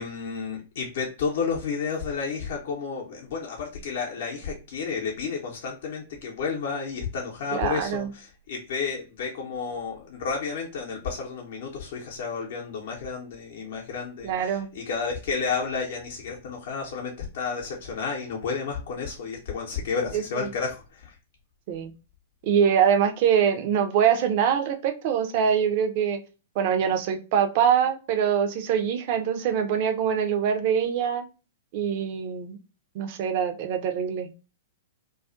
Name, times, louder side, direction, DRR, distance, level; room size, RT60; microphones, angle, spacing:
voice 1, 0.0-21.1, left 5 dB, 60° left, -1 dB, 0.6 m, -31 dB
voice 2, 7.5-8.1 14.2-14.7 20.1-20.5 21.7-21.9 22.4-26.2 26.6-31.2 31.7-32.6 32.9-34.3, right 8 dB, 50° right, 7 dB, 0.5 m, -24 dB
2.3 x 2.3 x 2.3 m, 0.31 s
figure-of-eight pair, 110°, 0 cm